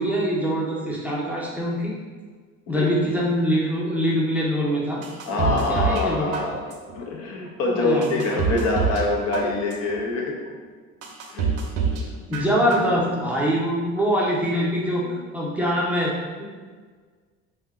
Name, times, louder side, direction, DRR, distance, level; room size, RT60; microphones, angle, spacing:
voice 1, 0.0-1.9 2.7-5.0 5.4-6.3 7.7-8.4 12.3-16.1, equal, 5° right, -5 dB, 0.6 m, -24 dB
sound 1, 5.0-6.1 6.3-7.0 7.5-7.6 8.0-9.1 9.3-10.0 10.5-10.6 11.0-12.0 12.3-13.0 13.3-13.4, right 5 dB, 55° right, 0.5 m, -26 dB
voice 2, 5.3-6.7 6.9-10.4 11.3-11.5 15.0-15.3, left 2 dB, 60° left, -1 dB, 0.7 m, -25 dB
2.7 x 2.2 x 3.4 m, 1.5 s
supercardioid pair, 95°, 29 cm